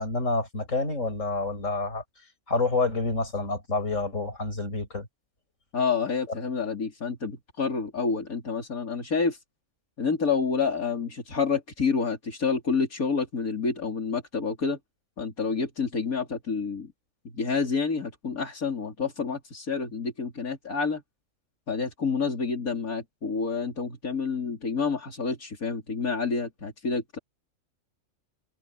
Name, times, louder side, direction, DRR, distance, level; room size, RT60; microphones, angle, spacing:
voice 1, 0.0-2.0 2.5-5.1, left 3 dB, 60° left, 5.9 m, -28 dB
voice 2, 5.7-9.4 10.0-14.8 15.2-16.9 17.3-21.0 21.7-27.2, left 5 dB, 90° left, 3.9 m, -28 dB
omnidirectional pair, 1.5 m